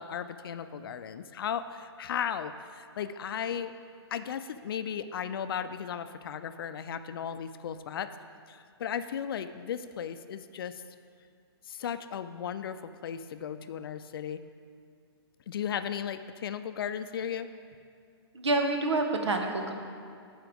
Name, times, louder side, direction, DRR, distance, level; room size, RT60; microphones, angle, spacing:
voice 1, 0.0-3.7 4.1-8.1 8.5-10.8 11.7-14.4 15.5-17.5, left 8 dB, 55° left, 11 dB, 0.4 m, -35 dB
voice 2, 18.3-19.7, right 2 dB, 90° right, 4 dB, 1.1 m, -27 dB
13.5 x 4.7 x 3.5 m, 2.3 s
hypercardioid pair, 155°, 14 cm